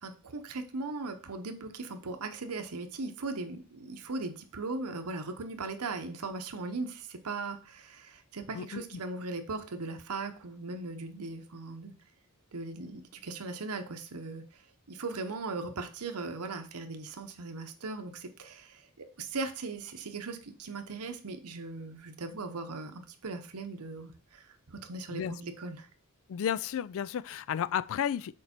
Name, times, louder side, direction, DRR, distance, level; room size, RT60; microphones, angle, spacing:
voice 1, 0.0-11.9 12.5-14.6 14.9-25.9, right 3 dB, 85° right, 0.9 m, -39 dB
voice 2, 8.5-8.8 25.1-25.4 26.3-28.3, left 9 dB, 60° left, 0.3 m, -32 dB
6.6 x 4.6 x 4.3 m
head